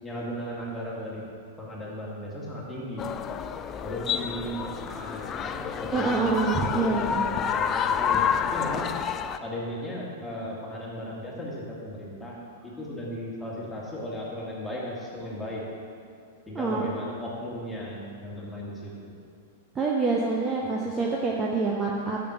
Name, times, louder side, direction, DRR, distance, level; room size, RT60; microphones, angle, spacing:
voice 1, 0.0-1.3 1.6-3.1 3.8-8.9 9.4-12.4 12.6-15.6 16.5-19.2 20.6-20.7, equal, 5° left, -6 dB, 2.2 m, -36 dB
sound 1, 3.0-9.4, left 7 dB, 25° left, 0.3 m, -29 dB
voice 2, 5.9-7.2 16.5-16.9 19.7-22.2, right 3 dB, 20° right, -2 dB, 0.8 m, -26 dB
8.4 x 6.0 x 5.8 m, 2.3 s
figure-of-eight pair, 95°, 0 cm